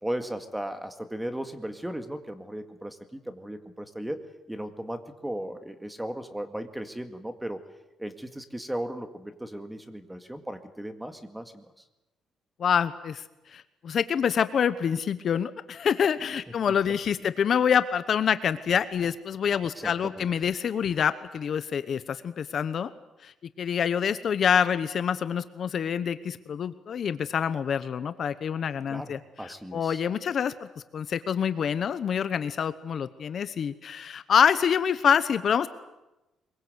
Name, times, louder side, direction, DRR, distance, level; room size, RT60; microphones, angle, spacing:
voice 1, 0.0-7.7 8.0-11.7 17.2-17.3 19.8-20.3 28.9-30.0, right 1 dB, 5° right, 8 dB, 2.0 m, -36 dB
voice 2, 12.6-13.2 13.5-22.9 23.2-30.7 30.9-35.7, left 7 dB, 50° left, 12 dB, 1.0 m, -26 dB
23.5 x 22.5 x 8.1 m, 1.0 s
cardioid pair, 125°, 0 cm